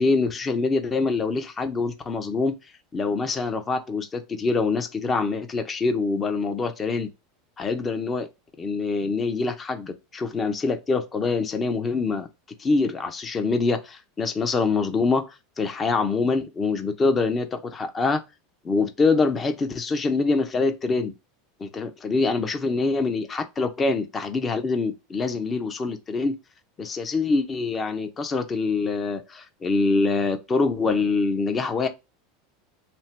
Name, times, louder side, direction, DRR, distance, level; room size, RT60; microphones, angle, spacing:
voice 1, 0.0-2.5 2.9-7.1 7.6-8.3 8.6-12.3 12.6-18.2 18.6-21.1 21.6-26.4 26.8-31.9, left 3 dB, 25° left, 0.7 m, -25 dB
2.7 x 2.0 x 3.4 m
hypercardioid pair, 90°, 0 cm